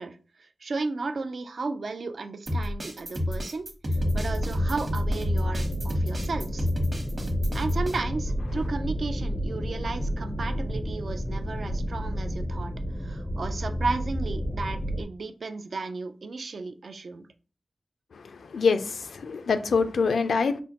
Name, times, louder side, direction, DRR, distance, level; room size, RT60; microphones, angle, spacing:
voice 1, 0.0-3.7 4.1-6.7 7.5-12.7 13.0-17.3, right 3 dB, 65° right, 0.4 m, -34 dB
sound 1, 2.5-8.0, left 1 dB, 35° right, 0.9 m, -29 dB
sound 2, 3.9-15.0, equal, 10° left, 0.4 m, -30 dB
voice 2, 18.1-20.6, left 5 dB, 85° left, 0.4 m, -25 dB
5.2 x 2.0 x 2.8 m
wide cardioid pair, 100°, 0 cm